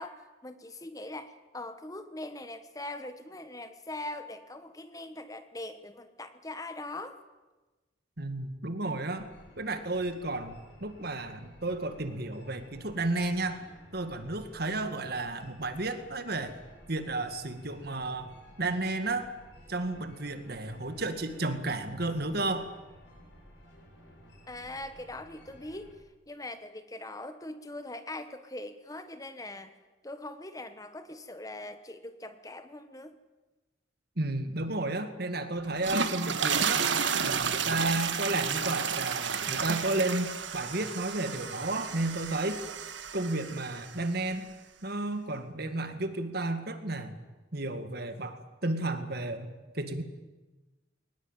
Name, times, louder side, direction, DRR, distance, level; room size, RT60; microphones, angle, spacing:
voice 1, 0.0-7.2 24.5-33.1, left 2 dB, 20° left, 10 dB, 1.2 m, -42 dB
voice 2, 8.2-9.3 9.6-13.7 13.9-16.5 16.9-18.3 18.6-19.3 19.7-22.7 34.2-36.9 37.2-42.6 43.1-44.5 44.8-47.1 47.5-50.0, right 2 dB, 55° right, 9 dB, 2.0 m, -32 dB
sound 1, 9.2-25.9, equal, 70° left, 7.7 m, -54 dB
sound 2, 35.6-44.0, right 6 dB, 70° right, 1.6 m, -32 dB
21.5 x 19.5 x 9.1 m, 1.2 s
head